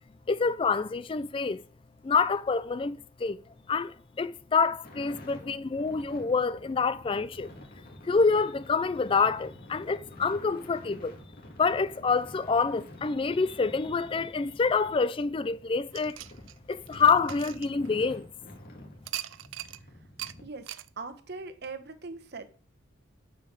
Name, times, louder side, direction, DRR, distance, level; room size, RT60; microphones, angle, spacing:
voice 1, 0.3-1.6 2.0-3.4 3.7-7.5 8.0-11.2 11.6-16.2 16.7-18.3, left 4 dB, 25° left, 0.4 m, -27 dB
sound 1, 4.8-20.4, left 1 dB, 50° left, 2.4 m, -49 dB
sound 2, 15.9-18.3 19.0-19.8 20.2-20.3 20.7-20.9, right 14 dB, 80° right, 0.5 m, -40 dB
voice 2, 21.0-22.5, right 4 dB, 55° right, 1.0 m, -40 dB
9.4 x 5.6 x 6.6 m
head